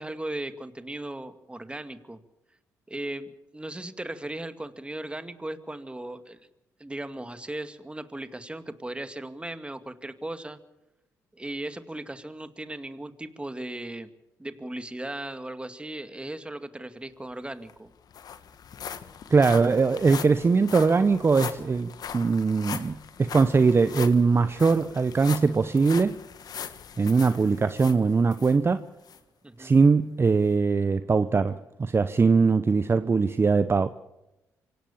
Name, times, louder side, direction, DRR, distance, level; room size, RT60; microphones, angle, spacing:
voice 1, 0.0-2.2 2.9-6.4 6.8-10.6 11.3-14.1 14.4-17.9 29.4-29.7, right 1 dB, 15° right, 2.2 m, -37 dB
sound 1, 17.3-17.4 17.7-28.6 29.1-29.2 29.7-29.8, left 8 dB, 60° left, 1.6 m, -40 dB
voice 2, 19.3-26.2 27.0-28.9 29.6-33.9, right 4 dB, 35° right, 0.9 m, -21 dB
25.0 x 17.5 x 7.2 m
supercardioid pair, 55°, 7 cm